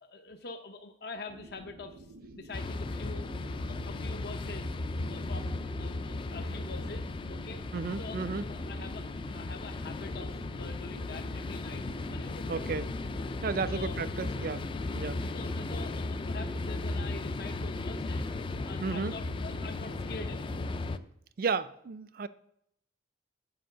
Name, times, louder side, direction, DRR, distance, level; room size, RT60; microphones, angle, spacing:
voice 1, 0.0-2.1 2.3-3.3 3.6-4.8 5.1-7.6 8.0-9.1 9.3-11.8 12.1-12.7 13.7-14.0 15.0-18.3 18.6-20.7, left 3 dB, 60° left, 0.7 m, -45 dB
sound 1, 1.3-21.0, right 1 dB, 80° right, 0.7 m, -51 dB
sound 2, 2.5-21.0, left 2 dB, 30° left, 0.3 m, -36 dB
voice 2, 7.7-8.5 12.5-12.9 13.4-14.7 14.9-15.2 18.8-19.2 21.4-22.3, right 4 dB, 55° right, 0.4 m, -33 dB
7.8 x 4.6 x 6.6 m
head